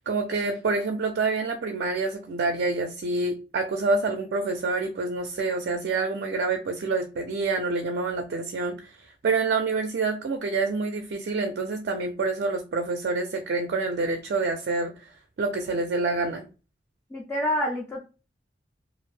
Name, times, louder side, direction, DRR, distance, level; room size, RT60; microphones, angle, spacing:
voice 1, 0.1-15.0 15.4-16.4, right 3 dB, 60° right, 4 dB, 0.4 m, -27 dB
voice 2, 17.1-18.0, left 1 dB, 15° left, -2 dB, 0.4 m, -27 dB
2.4 x 2.0 x 3.1 m, 0.33 s
head